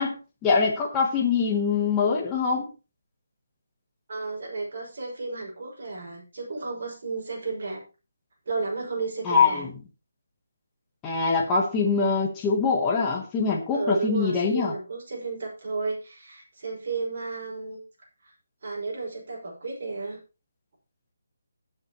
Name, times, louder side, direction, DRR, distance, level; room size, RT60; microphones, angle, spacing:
voice 1, 0.0-2.7 9.2-9.7 11.0-14.7, left 5 dB, 10° left, -2 dB, 1.1 m, -23 dB
voice 2, 4.1-7.8 8.5-9.7 13.7-17.8 18.6-20.2, right 3 dB, 40° right, -2 dB, 5.5 m, -33 dB
20.0 x 6.8 x 3.0 m, 0.31 s
hypercardioid pair, 180°, 0 cm